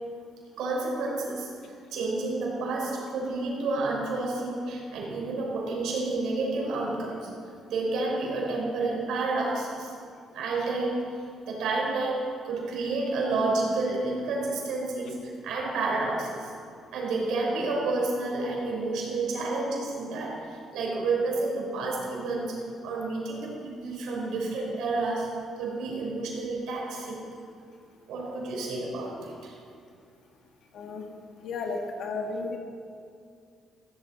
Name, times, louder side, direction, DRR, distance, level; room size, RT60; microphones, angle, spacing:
voice 1, 0.6-1.5 1.9-7.3 7.7-9.9 10.3-16.5 16.9-27.3 28.1-29.6, right 3 dB, 85° right, -2 dB, 3.9 m, -30 dB
voice 2, 30.7-31.1 31.4-32.6, left 3 dB, 70° left, 2 dB, 1.9 m, -33 dB
15.5 x 13.0 x 4.1 m, 2.4 s
cardioid pair, 90°, 0 cm